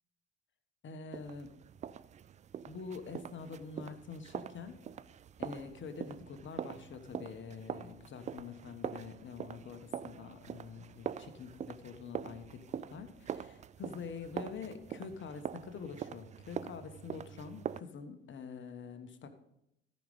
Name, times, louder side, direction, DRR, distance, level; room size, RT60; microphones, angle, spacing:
voice 1, 0.8-1.5 2.7-4.8 5.4-19.3, left 5 dB, 40° left, 8 dB, 1.2 m, -46 dB
sound 1, 1.1-17.8, right 8 dB, 25° right, 0.3 m, -44 dB
13.5 x 5.4 x 5.4 m, 0.83 s
hypercardioid pair, 65°, 30 cm